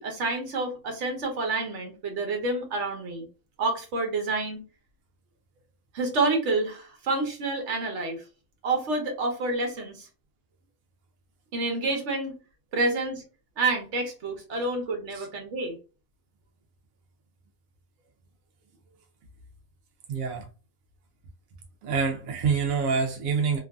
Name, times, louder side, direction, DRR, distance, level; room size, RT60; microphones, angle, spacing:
voice 1, 0.0-3.3 3.6-4.7 5.9-8.2 8.6-10.1 11.5-12.3 12.7-13.2 13.6-15.8, right 2 dB, 60° right, 1.2 m, -28 dB
voice 2, 20.1-20.4 21.8-23.6, right 5 dB, 80° right, 1.0 m, -26 dB
3.0 x 2.5 x 2.3 m
omnidirectional pair, 1.4 m